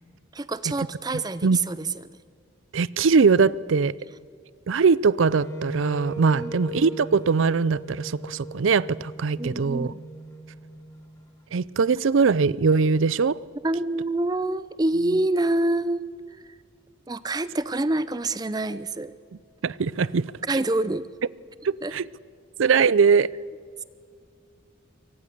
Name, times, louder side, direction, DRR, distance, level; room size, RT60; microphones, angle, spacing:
voice 1, 0.3-2.1 6.3-6.5 9.4-10.0 13.6-16.1 16.4-16.6 17.1-19.1 20.5-21.1 21.8-21.9, right 2 dB, 20° right, 15 dB, 0.5 m, -26 dB
voice 2, 2.7-3.9 4.7-9.9 11.5-13.4 19.6-20.3 21.6-22.0 22.6-23.3, right 5 dB, 75° right, 21 dB, 0.5 m, -21 dB
Wind instrument woodwind instrument, 5.3-11.3, right 2 dB, 15° left, 3.1 m, -38 dB
24.0 x 18.5 x 6.7 m, 2.2 s
head